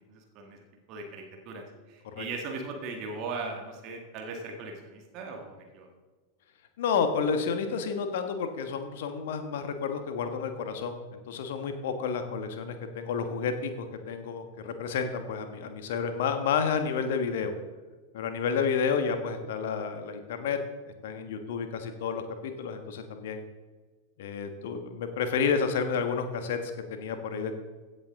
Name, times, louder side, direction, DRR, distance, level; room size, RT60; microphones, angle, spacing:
voice 1, 0.1-5.9, right 3 dB, 40° right, 2 dB, 1.9 m, -39 dB
voice 2, 6.8-17.5 18.1-20.6 21.0-23.4 24.2-27.6, left 6 dB, 55° left, 7 dB, 1.4 m, -30 dB
16.0 x 8.1 x 3.7 m, 1.3 s
figure-of-eight pair, 90°, 0 cm